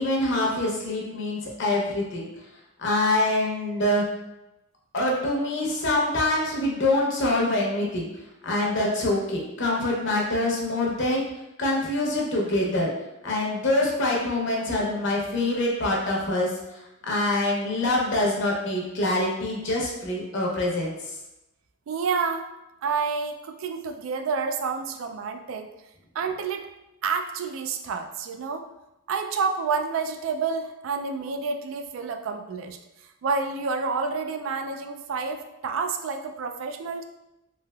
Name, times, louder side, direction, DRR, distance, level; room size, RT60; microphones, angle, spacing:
voice 1, 0.0-2.3 2.8-4.0 4.9-8.1 8.4-11.3 11.6-12.9 13.2-16.8 17.1-21.1, left 1 dB, 65° left, -2 dB, 0.8 m, -25 dB
voice 2, 21.9-22.4 22.8-25.7 26.1-26.7 27.0-28.6 29.1-32.8 33.2-37.0, right 5 dB, 85° right, 6 dB, 0.3 m, -29 dB
3.3 x 2.8 x 2.3 m, 0.93 s
head